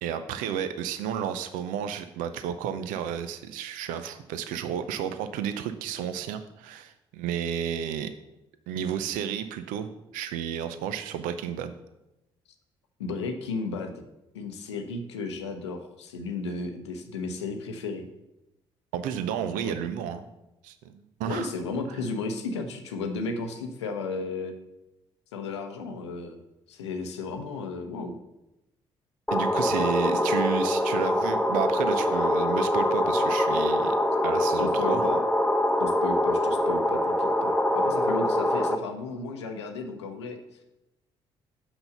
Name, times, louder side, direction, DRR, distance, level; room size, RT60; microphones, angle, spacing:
voice 1, 0.0-8.1 8.7-11.7 18.9-20.3 20.6-21.5 29.3-34.0 34.2-35.0, right 9 dB, 70° right, 10 dB, 0.6 m, -32 dB
voice 2, 13.0-14.0 14.3-18.1 19.6-19.7 21.3-24.5 25.3-26.4 26.7-28.1 34.6-35.2 35.8-40.4, left 3 dB, 85° left, 6 dB, 0.8 m, -34 dB
sound 1, 29.3-38.7, left 1 dB, 5° left, 0.8 m, -24 dB
5.9 x 5.4 x 6.6 m, 0.92 s
hypercardioid pair, 45°, 14 cm